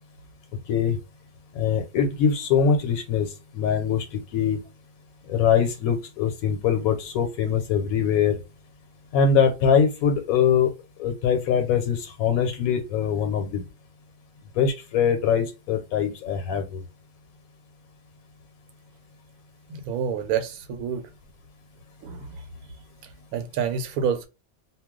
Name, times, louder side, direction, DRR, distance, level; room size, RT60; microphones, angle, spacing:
voice 1, 1.6-3.3 3.5-4.6 5.3-8.4 9.1-10.7 11.0-13.6 14.6-16.8, left 7 dB, 80° left, 1.0 m, -22 dB
voice 2, 19.7-21.1 22.0-22.4 23.3-24.3, right 7 dB, 90° right, 1.1 m, -28 dB
2.3 x 2.2 x 3.6 m
omnidirectional pair, 1.5 m